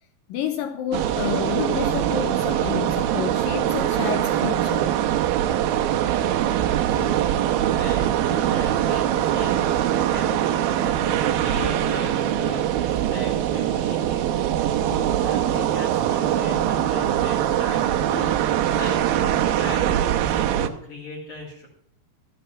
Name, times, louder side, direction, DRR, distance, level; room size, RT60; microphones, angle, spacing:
voice 1, 0.3-4.9, left 9 dB, 80° left, 2.0 m, -30 dB
sound 1, 0.9-20.7, right 11 dB, 80° right, 2.1 m, -22 dB
voice 2, 6.9-10.5 10.8-21.7, left 2 dB, 45° left, 3.9 m, -38 dB
14.0 x 9.0 x 5.7 m
omnidirectional pair, 5.0 m